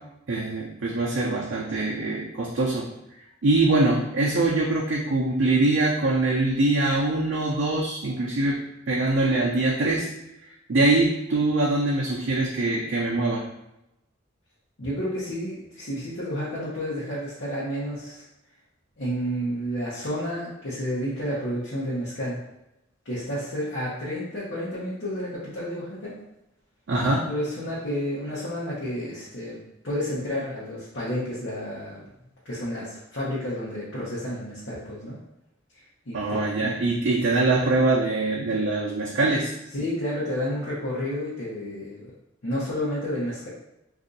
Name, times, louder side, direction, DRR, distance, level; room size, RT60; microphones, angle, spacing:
voice 1, 0.3-2.9 3.4-8.6 8.9-10.1 10.7-13.4 26.9-27.3 36.1-39.5, right 2 dB, 65° right, -4 dB, 0.5 m, -23 dB
voice 2, 14.8-18.2 19.0-22.4 23.0-26.1 27.3-32.0 32.4-35.2 36.1-36.7 39.7-42.1 42.4-43.5, equal, 65° left, -9 dB, 0.9 m, -31 dB
2.6 x 2.4 x 3.9 m, 0.87 s
head